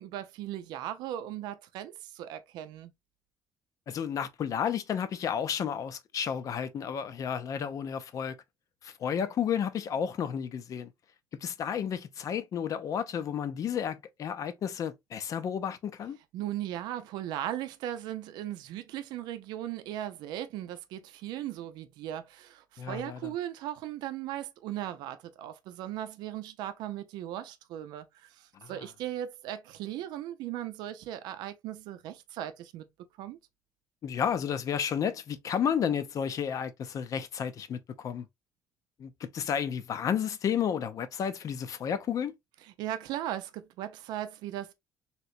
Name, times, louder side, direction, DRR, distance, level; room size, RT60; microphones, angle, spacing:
voice 1, 0.0-2.9 16.3-32.8 33.2-33.4 42.6-44.7, right 12 dB, 85° right, 0.5 m, -38 dB
voice 2, 3.9-8.3 8.8-10.9 11.4-16.2 22.8-23.3 28.6-28.8 34.0-38.3 39.0-42.3, left 8 dB, 50° left, 0.5 m, -32 dB
3.2 x 2.9 x 2.7 m
cardioid pair, 105°, 7 cm